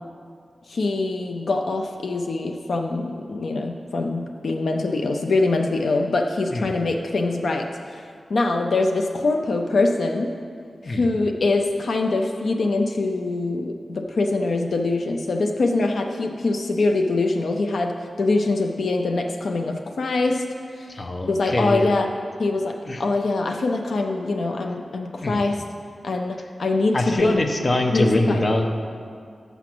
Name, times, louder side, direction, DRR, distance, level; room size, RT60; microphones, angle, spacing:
voice 1, 0.7-8.0 8.3-10.3 10.8-20.5 20.8-20.9 21.3-22.1 22.4-25.6 26.0-27.4 27.9-28.4, left 3 dB, 75° left, 4 dB, 0.4 m, -23 dB
voice 2, 20.9-21.9 22.9-23.0 25.2-25.5 26.9-28.7, left 2 dB, 35° left, 4 dB, 0.6 m, -23 dB
6.8 x 6.0 x 6.0 m, 2.2 s
wide cardioid pair, 135°, 0 cm